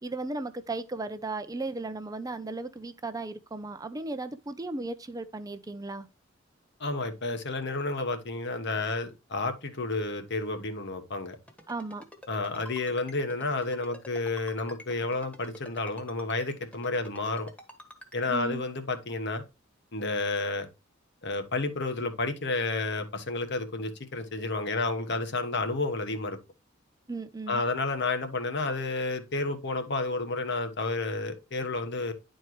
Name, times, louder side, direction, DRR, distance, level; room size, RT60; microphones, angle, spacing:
voice 1, 0.0-6.1 11.7-12.0 18.3-18.6 27.1-27.6, right 2 dB, 20° right, 0.5 m, -35 dB
voice 2, 6.8-11.4 12.3-17.5 18.1-19.4 19.9-20.7 21.2-26.4 27.5-32.1, left 3 dB, 60° left, 1.2 m, -31 dB
Ringtone, 11.5-18.3, equal, 5° left, 1.3 m, -47 dB
10.5 x 4.5 x 3.0 m
head